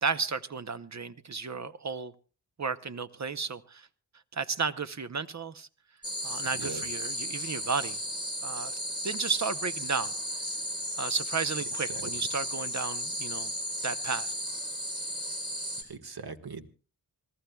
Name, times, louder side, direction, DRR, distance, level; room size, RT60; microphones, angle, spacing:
voice 1, 0.0-2.1 2.6-3.9 4.3-5.7 6.2-8.0 8.4-8.8 9.0-10.1 11.0-13.5 13.8-14.3, right 5 dB, 45° right, 13 dB, 0.7 m, -33 dB
sound 1, 6.0-15.8, equal, 10° right, 3.6 m, -35 dB
voice 2, 15.8-16.6, right 5 dB, 65° right, 8 dB, 1.5 m, -40 dB
27.5 x 18.5 x 2.3 m, 0.37 s
wide cardioid pair, 135°, 41 cm